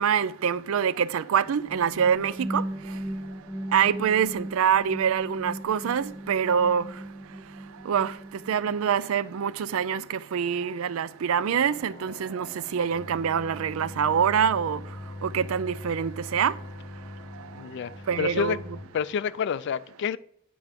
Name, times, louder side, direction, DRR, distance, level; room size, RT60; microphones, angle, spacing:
voice 1, 0.0-2.6 3.7-6.9 7.8-8.2 8.5-14.8 15.2-16.5 18.1-18.6, right 7 dB, 75° right, 0.4 m, -25 dB
sound 1, 1.5-9.3, equal, 5° right, 0.4 m, -38 dB
sound 2, 11.6-18.9, left 1 dB, 15° left, 1.1 m, -42 dB
voice 2, 17.5-17.9 18.2-18.6 18.9-20.2, left 7 dB, 60° left, 0.3 m, -28 dB
9.6 x 4.6 x 5.1 m
head